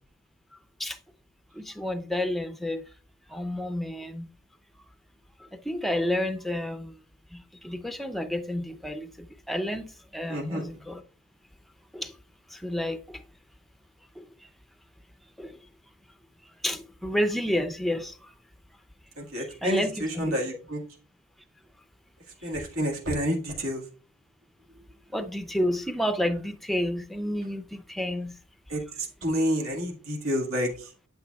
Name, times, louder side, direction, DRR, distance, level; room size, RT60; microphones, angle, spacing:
voice 1, 1.5-2.8 3.3-4.3 5.4-7.0 7.3-11.0 11.9-12.1 12.5-13.2 14.2-14.5 15.4-15.6 16.6-18.3 19.5-20.4 25.1-28.4, left 1 dB, ahead, 0.4 m, -30 dB
voice 2, 10.3-10.6 19.2-20.8 22.4-23.8 28.7-30.9, equal, 90° right, 1.7 m, -29 dB
8.7 x 7.9 x 2.3 m
head